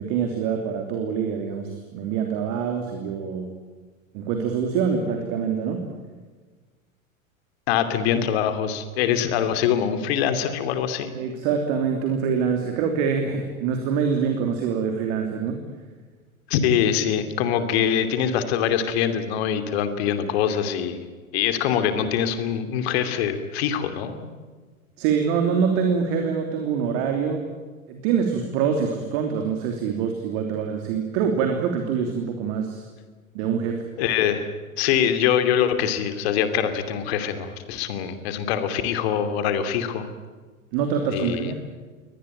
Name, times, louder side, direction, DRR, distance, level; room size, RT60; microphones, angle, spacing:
voice 1, 0.0-3.5 4.1-5.9 11.1-15.6 25.0-27.4 27.9-32.8 33.3-33.9 40.7-41.5, right 6 dB, 45° right, 4 dB, 3.1 m, -25 dB
voice 2, 7.7-11.1 16.5-21.0 21.3-24.3 34.0-34.5 34.8-40.1 41.0-41.5, left 8 dB, 50° left, 9 dB, 2.9 m, -24 dB
23.5 x 19.0 x 9.0 m, 1.4 s
figure-of-eight pair, 90°, 41 cm